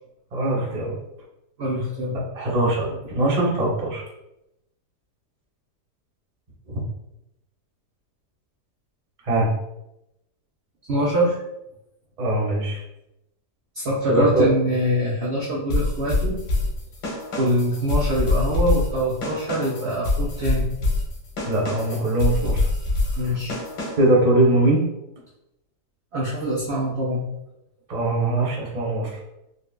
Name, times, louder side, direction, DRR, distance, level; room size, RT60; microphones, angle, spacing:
voice 1, 0.3-1.0 2.3-4.1 6.7-6.8 9.2-9.5 12.2-12.8 14.1-14.5 21.5-22.7 24.0-24.8 27.9-29.1, right 2 dB, 40° right, -3 dB, 0.6 m, -21 dB
voice 2, 1.6-2.3 10.9-11.4 13.8-16.4 17.4-20.7 23.1-23.6 26.1-27.3, equal, 85° right, -5 dB, 0.5 m, -24 dB
sound 1, 15.7-24.2, left 2 dB, 85° left, 1.5 m, -25 dB
4.0 x 2.2 x 2.2 m, 0.87 s
omnidirectional pair, 1.8 m